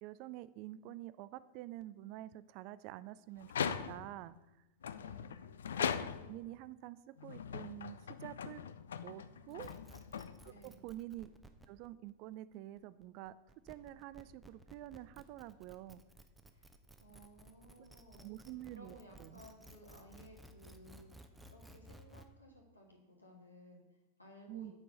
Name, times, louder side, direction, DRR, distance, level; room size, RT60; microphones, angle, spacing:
voice 1, 0.0-4.3 5.8-5.9 6.2-8.6 9.0-9.7 10.6-11.3 11.7-13.3 13.7-16.0 18.2-19.3 24.5-24.7, right 15 dB, 45° right, 16 dB, 0.3 m, -48 dB
sound 1, 3.4-4.2 4.8-6.5 7.2-10.7, left 7 dB, 65° left, 0.3 m, -40 dB
voice 2, 4.9-5.4 9.0-9.7 10.5-10.8 16.5-16.7 17.0-24.7, equal, 85° left, 0 dB, 1.6 m, -59 dB
sound 2, 9.5-22.3, right 1 dB, 5° right, 0.6 m, -57 dB
8.7 x 4.6 x 5.2 m, 1.0 s
figure-of-eight pair, 90°, 0 cm